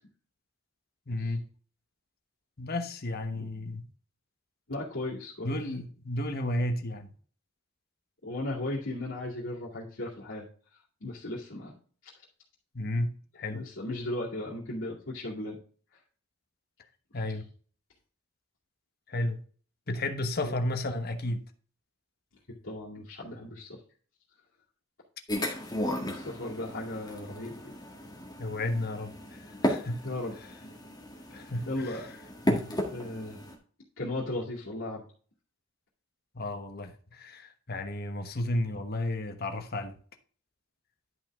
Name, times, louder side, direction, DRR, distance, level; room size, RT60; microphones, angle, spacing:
voice 1, 1.1-1.4 2.6-3.8 5.4-7.1 12.7-13.6 17.1-17.5 19.1-19.4 19.9-21.4 28.4-29.1 29.6-30.0 31.3-32.0 32.5-32.7 36.3-39.9, left 1 dB, 50° left, 1.1 m, -32 dB
voice 2, 4.7-5.7 8.2-10.5 11.0-11.7 13.5-15.6 20.4-20.5 22.6-23.8 26.1-27.7 30.0-30.3 31.7-32.1 32.5-32.6 32.9-33.4 34.0-35.0, left 1 dB, 70° left, 2.4 m, -36 dB
sound 1, 25.3-33.5, equal, 20° left, 1.7 m, -34 dB
11.0 x 5.6 x 3.6 m
head